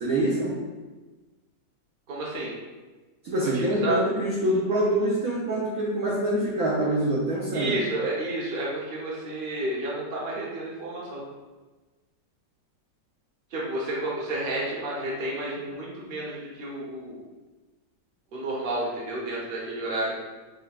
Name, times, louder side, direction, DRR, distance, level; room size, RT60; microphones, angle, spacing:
voice 1, 0.0-0.7 3.2-7.8, right 1 dB, 65° right, -4 dB, 0.9 m, -25 dB
voice 2, 2.1-2.5 3.5-4.0 7.5-11.2 13.5-17.2 18.3-20.1, right 1 dB, 40° right, -5 dB, 0.9 m, -31 dB
6.3 x 2.2 x 2.4 m, 1.2 s
omnidirectional pair, 1.9 m